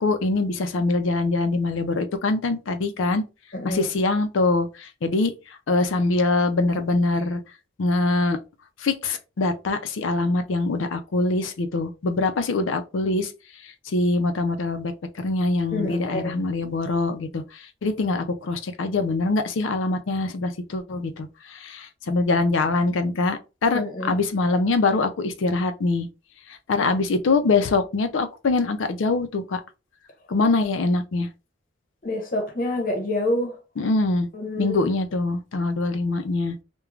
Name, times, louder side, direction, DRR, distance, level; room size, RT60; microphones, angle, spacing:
voice 1, 0.0-3.2 3.6-5.3 5.7-7.4 7.8-8.4 8.8-13.3 13.9-14.9 15.2-23.8 24.1-26.1 26.7-29.6 30.3-31.3 33.8-34.3 34.6-36.6, left 3 dB, 85° left, 0.5 m, -23 dB
voice 2, 3.5-3.9 15.7-16.3 23.7-24.2 32.0-33.6 34.3-34.9, left 1 dB, 45° left, 0.9 m, -27 dB
2.4 x 2.2 x 3.0 m
head